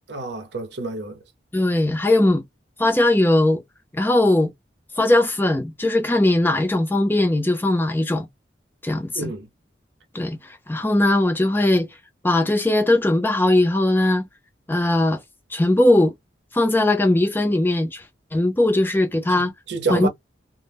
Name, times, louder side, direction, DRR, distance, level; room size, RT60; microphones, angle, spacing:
voice 1, 0.1-1.2 9.2-9.5 19.3-20.1, right 3 dB, 65° right, 0.7 m, -28 dB
voice 2, 1.5-2.4 2.8-3.6 3.9-4.5 5.0-8.3 8.8-9.3 10.1-10.4 10.7-11.9 12.2-14.3 14.7-15.2 15.5-16.1 16.5-18.0 18.3-19.5 19.9-20.1, left 1 dB, 10° left, 0.4 m, -19 dB
2.1 x 2.0 x 3.3 m
head